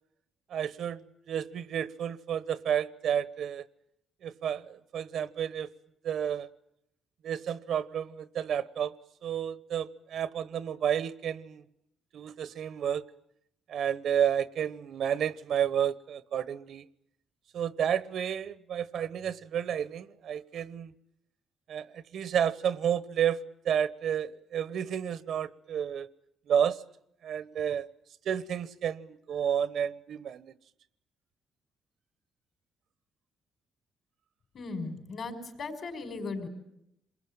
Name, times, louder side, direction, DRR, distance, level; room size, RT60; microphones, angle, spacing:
voice 1, 0.5-1.0 1.3-3.6 4.2-5.7 6.0-6.5 7.2-8.9 9.2-11.6 12.1-13.0 13.7-16.8 17.5-20.9 21.7-23.4 23.6-26.1 26.5-26.8 27.2-27.9 28.2-30.5, right 9 dB, 70° right, 1.1 m, -31 dB
voice 2, 34.5-36.5, left 3 dB, 55° left, 5.3 m, -37 dB
27.0 x 22.0 x 9.0 m
cardioid pair, 90°, 0 cm